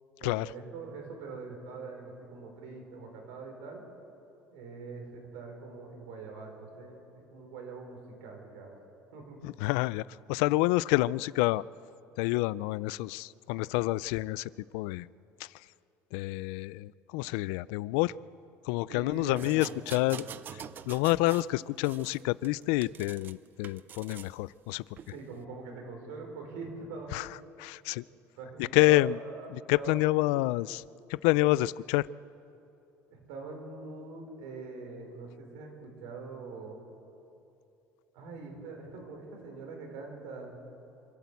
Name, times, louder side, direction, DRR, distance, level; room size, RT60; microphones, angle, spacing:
voice 1, 0.2-3.8 4.5-7.0 7.3-8.8 9.1-9.4 18.9-20.6 25.1-27.4 28.4-29.5 29.7-30.5 33.1-36.8 38.1-40.5, right 3 dB, 90° right, 2 dB, 4.9 m, -43 dB
voice 2, 9.4-11.6 12.2-15.1 15.4-15.5 16.1-18.1 18.7-20.3 20.9-24.8 27.1-27.3 27.6-28.0 28.6-29.2 29.5-30.8 31.1-32.1, left 19 dB, 85° left, 21 dB, 0.4 m, -28 dB
sound 1, 19.4-21.5 21.8-23.3 23.6-24.3 25.0-25.1, right 9 dB, 35° right, 0.6 m, -46 dB
26.0 x 12.0 x 8.3 m, 2.8 s
cardioid pair, 145°, 6 cm